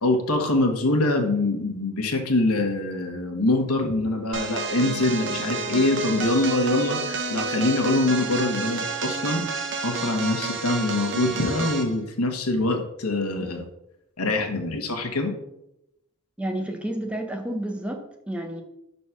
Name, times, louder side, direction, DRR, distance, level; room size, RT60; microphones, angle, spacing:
voice 1, 0.0-9.4 9.8-13.7 14.2-15.3, left 2 dB, 90° left, 3 dB, 1.3 m, -24 dB
sound 1, 4.3-11.9, right 4 dB, 55° right, 0.7 m, -30 dB
voice 2, 16.4-18.6, right 1 dB, 5° right, 3 dB, 0.7 m, -30 dB
5.5 x 4.2 x 5.9 m, 0.83 s
head